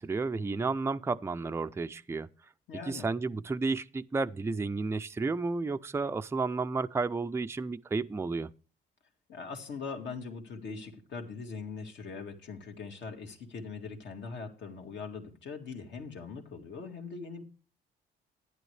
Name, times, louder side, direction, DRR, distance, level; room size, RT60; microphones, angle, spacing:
voice 1, 0.0-2.3 2.9-8.5, right 3 dB, 15° right, 0.4 m, -32 dB
voice 2, 2.7-3.1 9.3-17.4, left 4 dB, 65° left, 2.1 m, -41 dB
12.0 x 9.8 x 3.3 m
cardioid pair, 90°, 20 cm